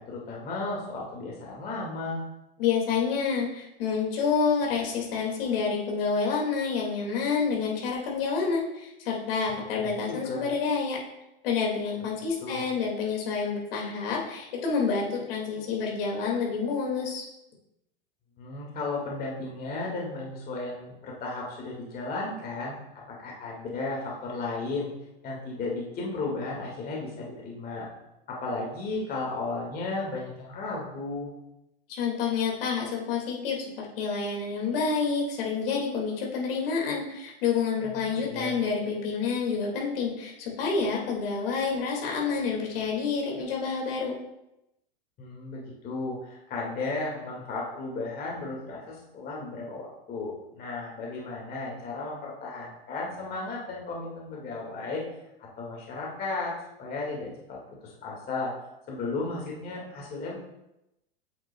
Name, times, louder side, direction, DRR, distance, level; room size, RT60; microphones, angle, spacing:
voice 1, 0.0-2.2 9.8-10.4 12.4-12.7 18.4-24.9 25.2-27.9 28.3-31.3 37.9-38.6 45.2-55.0 55.4-56.5 56.8-58.5 58.9-60.4, left 3 dB, 30° left, -3 dB, 1.9 m, -34 dB
voice 2, 2.6-11.0 11.4-17.3 31.9-44.1, left 5 dB, 70° left, -1 dB, 2.1 m, -28 dB
8.3 x 6.0 x 2.3 m, 0.88 s
hypercardioid pair, 125°, 30 cm